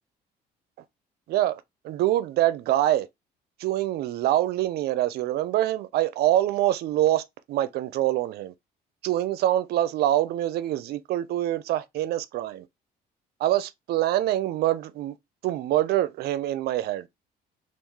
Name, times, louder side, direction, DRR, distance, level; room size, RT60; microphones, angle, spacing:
voice 1, 1.3-3.1 3.6-8.5 9.0-12.7 13.4-15.2 15.4-17.1, right 13 dB, 70° right, 0.5 m, -25 dB
3.1 x 2.5 x 3.6 m
cardioid pair, 110°, 17 cm